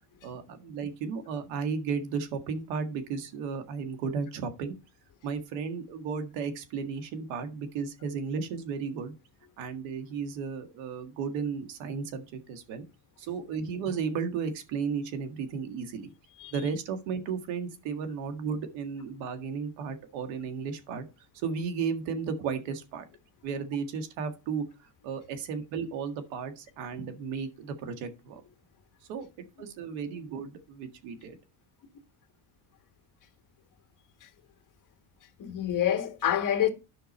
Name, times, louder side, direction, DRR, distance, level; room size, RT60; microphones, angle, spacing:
voice 1, 0.2-4.7 5.2-9.1 9.6-12.8 13.2-16.1 16.5-21.1 21.3-23.1 23.4-24.7 25.0-28.4 29.1-29.3 29.6-31.4, right 5 dB, 90° right, 1.9 m, -34 dB
voice 2, 35.4-36.7, left 10 dB, 45° left, 1.9 m, -27 dB
10.5 x 6.0 x 4.3 m
cardioid pair, 120°, 45 cm